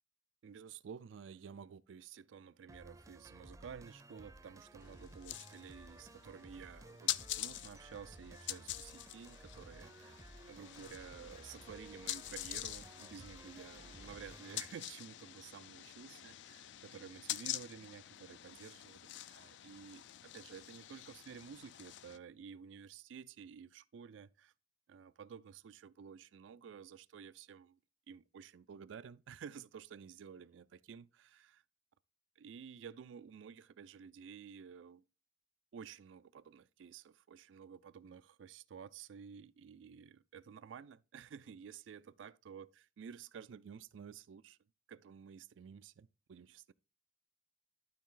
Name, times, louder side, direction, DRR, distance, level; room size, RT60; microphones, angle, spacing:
voice 1, 0.4-24.5 24.9-27.8 28.1-31.6 32.4-35.0 35.7-44.6 44.9-46.7, right 7 dB, 85° right, 0.4 m, -52 dB
sound 1, 2.7-14.7, right 1 dB, 15° right, 0.5 m, -56 dB
sound 2, 4.8-22.2, left 14 dB, 70° left, 0.4 m, -46 dB
12.0 x 4.1 x 3.8 m
head